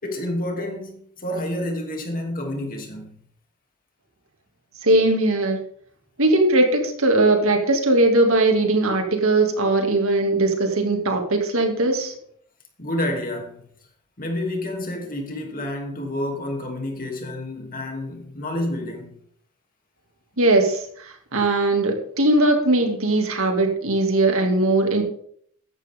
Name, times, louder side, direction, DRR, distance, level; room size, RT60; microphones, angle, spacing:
voice 1, 0.0-3.2 12.8-13.6 14.2-19.1, left 1 dB, 40° left, 2.9 m, -29 dB
voice 2, 4.8-5.6 6.2-12.2 20.4-25.0, right 2 dB, 65° right, 2.6 m, -19 dB
15.0 x 11.0 x 3.7 m
head